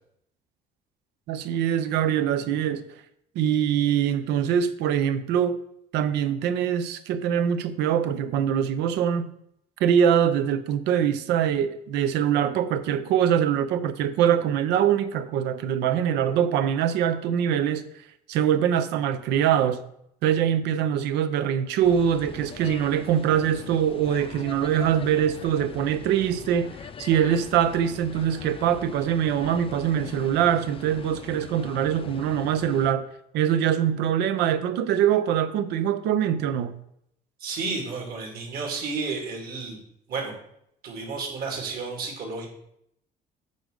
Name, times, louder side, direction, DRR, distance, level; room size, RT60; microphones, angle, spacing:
voice 1, 1.3-2.8 3.3-5.6 5.9-9.3 9.8-17.9 18.3-19.8 20.2-33.1 33.3-36.8, right 9 dB, 85° right, 0.7 m, -23 dB
sound 1, 21.8-32.9, left 7 dB, 35° left, 0.5 m, -42 dB
voice 2, 37.4-39.8 40.1-40.4 40.8-42.5, right 4 dB, 60° right, 2.9 m, -32 dB
8.5 x 3.9 x 6.6 m
cardioid pair, 110°, 17 cm